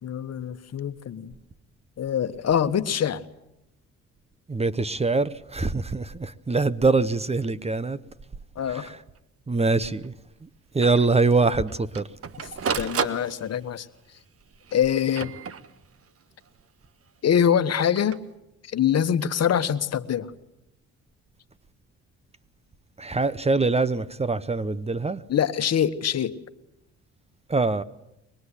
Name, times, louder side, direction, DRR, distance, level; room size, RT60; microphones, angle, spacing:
voice 1, 0.0-1.3 2.0-3.2 8.6-8.9 12.4-12.5 12.8-13.9 14.7-15.3 17.2-18.2 18.7-20.3 25.3-26.3, left 9 dB, 55° left, 1.5 m, -24 dB
voice 2, 4.5-8.0 8.7-9.0 9.5-10.1 10.7-12.1 23.0-25.2 27.5-27.8, right 3 dB, 20° right, 1.1 m, -23 dB
Printer, 9.2-9.3 9.6-9.7 10.0-10.1 10.8-11.1 11.7-13.8 14.6-16.1 17.7-18.2, right 6 dB, 50° right, 1.5 m, -32 dB
24.0 x 21.0 x 10.0 m
cardioid pair, 90°, 30 cm